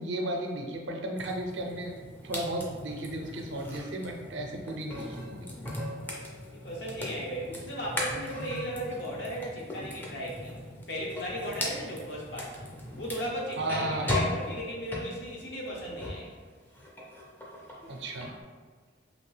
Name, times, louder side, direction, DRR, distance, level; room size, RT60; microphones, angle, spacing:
voice 1, 0.0-5.5 13.6-14.1 17.9-18.3, right 1 dB, 70° right, 2 dB, 0.5 m, -34 dB
sound 1, 1.2-16.3 16.6-18.3, left 1 dB, 10° left, 0.4 m, -38 dB
voice 2, 6.5-10.5 10.9-12.6 13.0-16.3, equal, 65° left, -3 dB, 0.7 m, -36 dB
2.8 x 2.6 x 3.2 m, 1.5 s
head